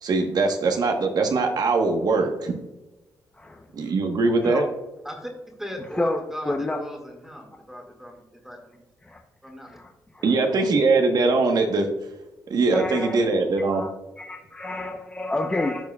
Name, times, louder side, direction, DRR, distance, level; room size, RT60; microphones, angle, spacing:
voice 1, 0.0-2.6 3.7-4.6 10.2-11.9 12.5-13.8, right 3 dB, 60° right, 5 dB, 1.2 m, -21 dB
voice 2, 5.6-8.8 9.4-9.8, equal, 5° right, 1 dB, 1.9 m, -38 dB
voice 3, 6.5-6.8 9.0-9.2 9.7-9.9 10.1-10.3 12.7-13.2 13.7-13.9 14.2-15.9, left 2 dB, 15° left, 2 dB, 0.7 m, -28 dB
13.5 x 4.5 x 2.3 m, 1.0 s
cardioid pair, 90°, 7 cm